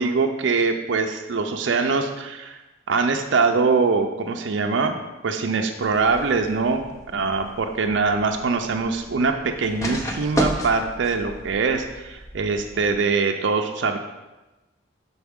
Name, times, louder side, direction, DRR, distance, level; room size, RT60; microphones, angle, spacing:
voice 1, 0.0-2.6 2.9-4.9 5.2-6.8 7.1-14.0, right 4 dB, 70° right, 4 dB, 0.4 m, -23 dB
sound 1, 5.8-13.0, equal, 15° left, 0.5 m, -33 dB
6.9 x 4.0 x 3.6 m, 1.1 s
head